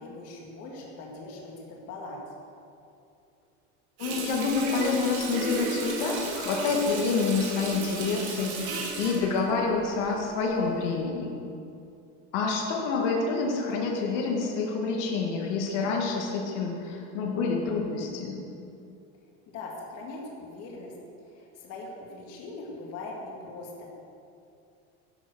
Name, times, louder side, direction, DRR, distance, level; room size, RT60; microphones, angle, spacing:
voice 1, 0.0-2.3 19.5-20.9 21.2-23.9, left 2 dB, 45° left, -2 dB, 2.2 m, -41 dB
voice 2, 4.0-11.3 12.3-18.4, left 4 dB, 90° left, 0 dB, 2.0 m, -28 dB
Water tap faucet, 4.0-10.4 10.8-10.9, right 3 dB, 75° right, 3.3 m, -34 dB
12.0 x 7.6 x 6.2 m, 2.6 s
cardioid pair, 165°, 34 cm